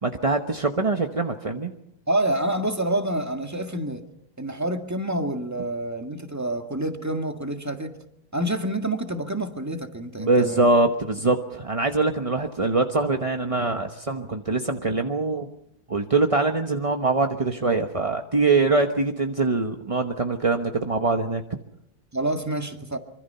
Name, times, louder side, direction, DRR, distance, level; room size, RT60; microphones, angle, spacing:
voice 1, 0.0-1.7 10.2-15.5 15.9-21.4, right 3 dB, 25° right, 0.8 m, -23 dB
voice 2, 2.1-4.0 4.4-7.9 8.3-10.7 22.1-23.0, right 1 dB, 10° right, 1.6 m, -27 dB
25.5 x 24.5 x 5.6 m
omnidirectional pair, 2.2 m